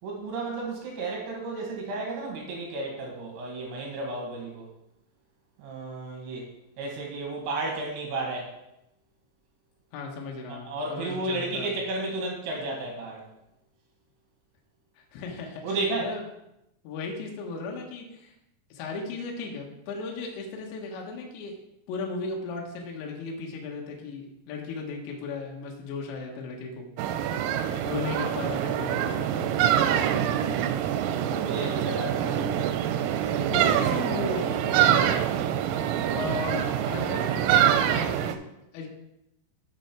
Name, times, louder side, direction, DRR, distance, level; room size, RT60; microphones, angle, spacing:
voice 1, 0.0-4.7 5.6-6.5 6.8-8.5 10.6-13.3 15.6-16.1 29.8-30.8 31.2-32.8, right 2 dB, 65° right, -1 dB, 4.0 m, -33 dB
voice 2, 9.9-11.7 15.1-16.2 16.8-18.3 18.7-21.5 21.9-26.8 27.8-29.5 33.3-35.3 36.1-38.4 38.7-38.9, left 3 dB, 70° left, 0 dB, 3.4 m, -36 dB
sound 1, 27.0-38.4, right 10 dB, 90° right, 3.3 m, -25 dB
8.9 x 7.0 x 4.5 m, 0.86 s
omnidirectional pair, 5.9 m